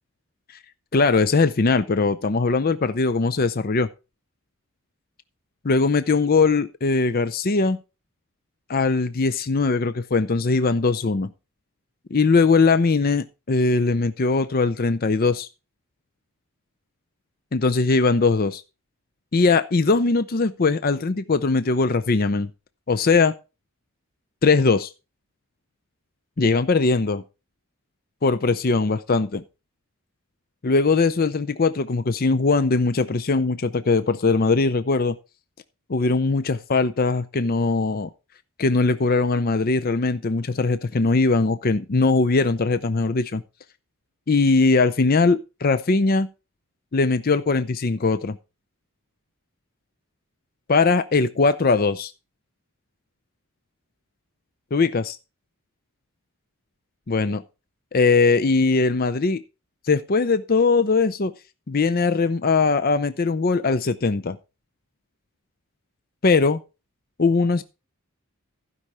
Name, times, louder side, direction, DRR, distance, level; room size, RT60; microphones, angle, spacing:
voice 1, 0.9-3.9 5.6-7.8 8.7-11.3 12.1-15.5 17.5-18.6 19.3-22.5 22.9-23.3 24.4-24.9 26.4-27.2 28.2-29.4 30.6-35.2 35.9-38.1 38.6-43.4 44.3-46.3 46.9-48.4 50.7-52.1 54.7-55.2 57.1-57.4 57.9-59.4 59.8-61.3 61.7-64.4 66.2-66.6 67.2-67.6, left 3 dB, 40° left, 0.5 m, -20 dB
15.0 x 5.5 x 4.8 m
head